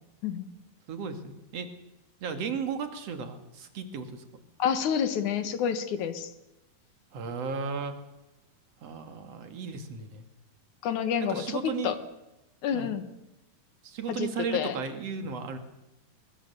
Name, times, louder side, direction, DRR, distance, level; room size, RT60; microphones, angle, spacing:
voice 1, 0.9-1.7 2.2-4.2 7.1-8.0 8.8-10.2 11.2-12.0 12.7-12.9 13.8-15.6, right 5 dB, 50° right, 7 dB, 2.7 m, -35 dB
voice 2, 4.6-6.3 10.8-12.0 12.6-13.0 14.1-14.8, left 8 dB, 60° left, 10 dB, 2.5 m, -29 dB
23.0 x 21.5 x 6.9 m, 0.95 s
omnidirectional pair, 4.3 m